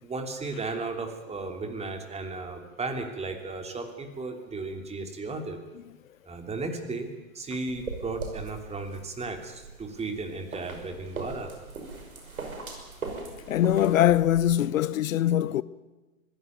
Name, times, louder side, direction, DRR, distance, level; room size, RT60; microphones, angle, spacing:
voice 1, 0.0-5.6 6.2-7.1 7.3-11.5, right 3 dB, 15° right, 3.1 m, -35 dB
sound 1, 7.7-14.4, right 3 dB, 85° right, 5.9 m, -40 dB
voice 2, 13.5-15.6, left 12 dB, 70° left, 0.7 m, -22 dB
23.0 x 17.0 x 9.4 m
hypercardioid pair, 110°, 41 cm